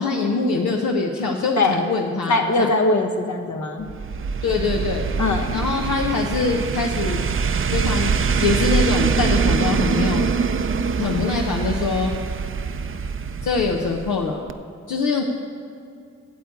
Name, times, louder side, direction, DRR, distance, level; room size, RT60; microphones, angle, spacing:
voice 1, 0.0-2.7 4.4-5.1 5.5-7.2 7.7-10.3 11.0-12.1 13.4-14.5 14.9-15.2, left 4 dB, 90° left, 0 dB, 0.8 m, -23 dB
voice 2, 2.3-3.9 5.2-5.6, left 2 dB, 70° left, 5 dB, 1.3 m, -21 dB
sound 1, 3.9-14.2 14.5-14.6, right 5 dB, 45° right, 0.6 m, -23 dB
9.2 x 8.0 x 8.3 m, 2.4 s
supercardioid pair, 45°, 30 cm